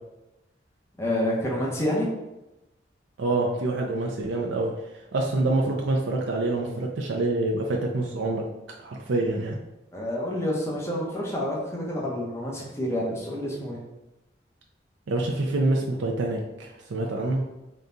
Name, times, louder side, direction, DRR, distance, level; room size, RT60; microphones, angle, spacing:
voice 1, 1.0-2.1 9.9-13.8, left 1 dB, 15° left, -4 dB, 0.7 m, -28 dB
voice 2, 3.2-4.7 5.1-8.4 8.8-9.6 15.1-17.4, right 2 dB, 85° right, 0 dB, 0.5 m, -26 dB
4.0 x 2.3 x 3.8 m, 0.98 s
head